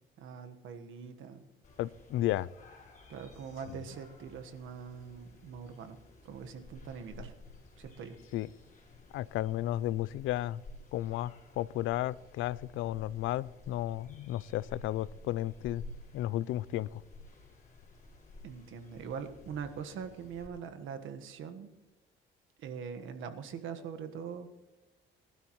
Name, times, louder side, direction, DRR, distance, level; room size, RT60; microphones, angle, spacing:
voice 1, 0.2-1.5 3.1-6.0 6.2-7.3 7.8-8.2 18.4-21.7 22.6-24.5, right 6 dB, 80° right, 8 dB, 1.4 m, -42 dB
Evening Pennypack Park sounds, 1.6-20.5, left 2 dB, 40° left, 5.2 m, -53 dB
voice 2, 1.8-2.5 8.3-8.5 9.1-10.6 10.9-15.8 16.1-17.0, left 14 dB, 85° left, 21 dB, 0.4 m, -33 dB
22.5 x 12.0 x 3.1 m, 1.0 s
cardioid pair, 90°, 20 cm